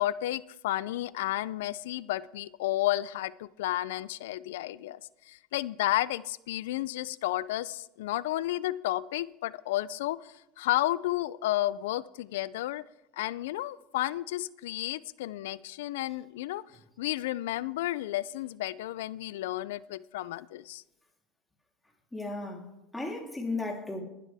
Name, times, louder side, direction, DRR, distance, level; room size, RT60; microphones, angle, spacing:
voice 1, 0.0-5.0 5.3-12.8 13.1-16.6 17.0-20.8, left 15 dB, 85° left, 0.4 m, -32 dB
voice 2, 22.1-24.0, left 2 dB, 10° left, 3.3 m, -35 dB
20.5 x 12.0 x 3.5 m
supercardioid pair, 110°, 0 cm